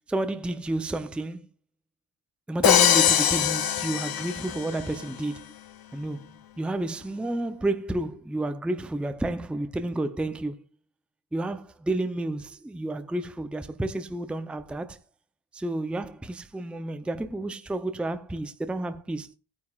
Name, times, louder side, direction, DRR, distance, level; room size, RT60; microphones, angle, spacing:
voice 1, 0.1-1.5 2.5-5.4 5.9-6.3 6.6-10.6 11.3-15.0 15.5-19.3, right 2 dB, 5° right, 0.5 m, -30 dB
Crash cymbal, 2.6-4.8, left 9 dB, 55° left, 0.7 m, -22 dB
18.0 x 9.7 x 2.3 m
wide cardioid pair, 155°, 45 cm